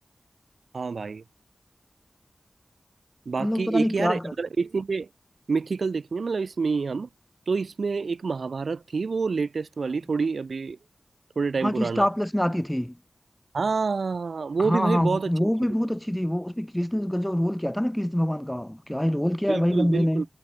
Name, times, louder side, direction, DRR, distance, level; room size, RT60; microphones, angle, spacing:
voice 1, 0.7-1.2 3.3-5.1 5.5-7.1 7.5-10.8 11.4-12.1 13.5-15.5 19.5-20.2, right 4 dB, 85° right, 1.1 m, -27 dB
voice 2, 3.4-4.3 11.6-12.9 14.6-20.2, equal, 10° left, 0.5 m, -25 dB
wide cardioid pair, 50°, 0 cm